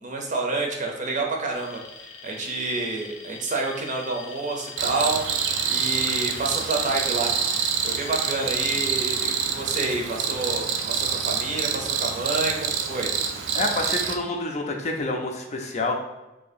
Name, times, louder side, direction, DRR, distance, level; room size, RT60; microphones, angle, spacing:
voice 1, 0.0-7.3 7.8-13.1, right 3 dB, 40° right, 1 dB, 0.6 m, -29 dB
Alarm, 1.5-9.5, left 4 dB, 85° left, 0.5 m, -43 dB
Cricket, 4.8-14.2, right 7 dB, 85° right, 0.4 m, -27 dB
voice 2, 13.5-15.9, left 2 dB, 40° left, 2 dB, 0.5 m, -28 dB
2.8 x 2.7 x 4.1 m, 0.99 s
head